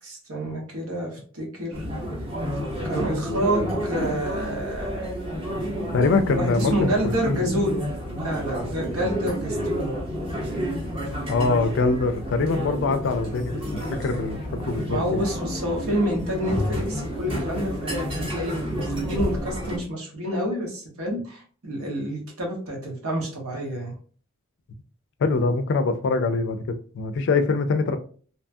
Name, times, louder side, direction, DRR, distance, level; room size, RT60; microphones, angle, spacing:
voice 1, 0.0-1.9 2.9-5.1 6.3-7.8 8.2-9.9 14.9-23.9, right 1 dB, 90° right, 1.0 m, -28 dB
sound 1, 1.7-19.8, equal, 25° right, 0.7 m, -30 dB
voice 2, 5.9-7.4 11.3-15.2 25.2-28.0, left 3 dB, 60° left, 0.4 m, -24 dB
2.9 x 2.3 x 2.6 m
head